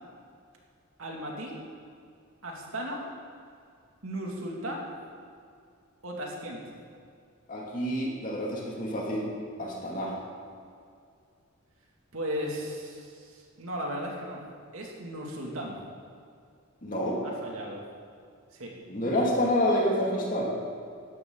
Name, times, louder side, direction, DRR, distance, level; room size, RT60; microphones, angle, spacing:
voice 1, 1.0-1.6 2.4-3.0 4.0-4.9 6.0-6.6 12.1-14.4 14.7-15.8 17.2-17.8 18.5-18.7, equal, 80° right, -1 dB, 2.6 m, -36 dB
voice 2, 7.5-9.3 9.6-10.2 16.8-17.2 18.9-20.5, left 1 dB, 40° left, -3 dB, 2.6 m, -28 dB
14.5 x 11.5 x 4.0 m, 2.3 s
head